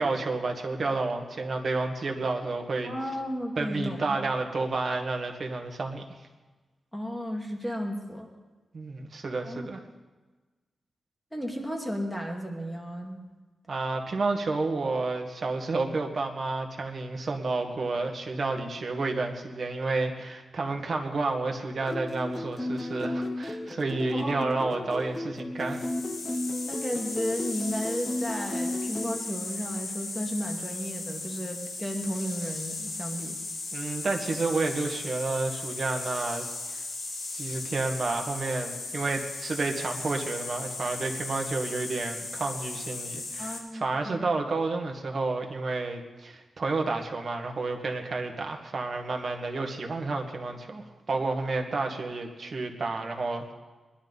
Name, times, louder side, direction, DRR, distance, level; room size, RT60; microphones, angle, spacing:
voice 1, 0.0-2.9 3.6-6.0 8.7-9.8 13.7-25.9 33.7-36.4 36.7-36.8 37.3-53.5, right 3 dB, 55° right, 3 dB, 1.8 m, -30 dB
voice 2, 2.8-4.2 6.9-8.3 9.4-10.0 11.3-13.3 24.1-24.5 26.7-33.4 43.4-44.2, equal, 5° left, 0 dB, 2.3 m, -34 dB
sound 1, 21.8-29.2, left 1 dB, 25° left, 1.0 m, -34 dB
sound 2, 25.6-43.6, left 3 dB, 55° left, 4.1 m, -37 dB
21.0 x 11.5 x 4.1 m, 1.2 s
cardioid pair, 90°, 0 cm